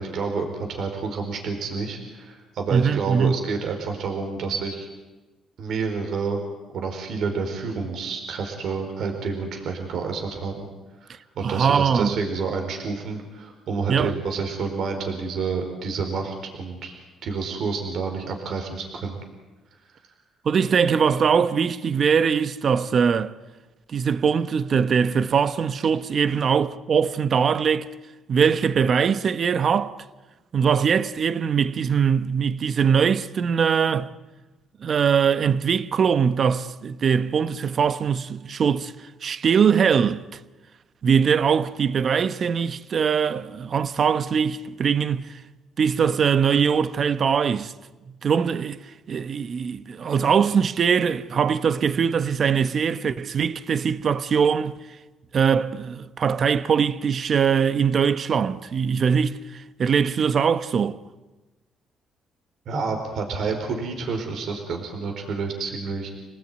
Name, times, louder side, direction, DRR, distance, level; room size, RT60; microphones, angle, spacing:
voice 1, 0.0-4.9 5.6-6.4 6.7-10.7 11.0-16.9 17.2-19.2 62.7-66.1, right 4 dB, 65° right, 4.5 m, -29 dB
voice 2, 2.7-3.4 11.4-12.2 13.9-14.1 20.4-23.3 23.9-27.9 28.3-30.0 30.5-34.1 34.8-38.9 39.2-40.4 41.0-45.4 45.8-47.7 48.2-48.8 49.1-54.8 55.3-61.0, right 6 dB, 50° right, 1.1 m, -22 dB
28.5 x 19.0 x 9.4 m
cardioid pair, 90°, 0 cm